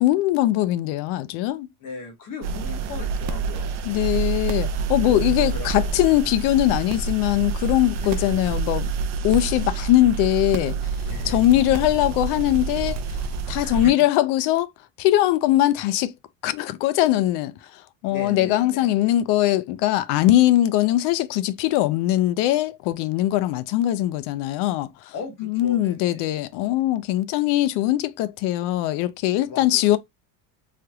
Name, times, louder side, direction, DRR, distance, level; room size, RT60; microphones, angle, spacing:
voice 1, 0.0-1.7 3.8-8.9 9.2-10.8 11.2-13.0 13.5-14.7 15.0-16.1 16.4-25.1 25.4-30.0, left 14 dB, 75° left, 0.5 m, -21 dB
voice 2, 1.8-3.7 5.1-6.0 8.0-8.3 11.0-11.4 13.6-13.9 18.1-18.9 25.1-26.3 29.5-29.9, left 4 dB, 50° left, 1.4 m, -37 dB
sound 1, 2.4-13.9, right 5 dB, 45° right, 0.4 m, -28 dB
3.3 x 2.9 x 2.2 m
cardioid pair, 145°, 41 cm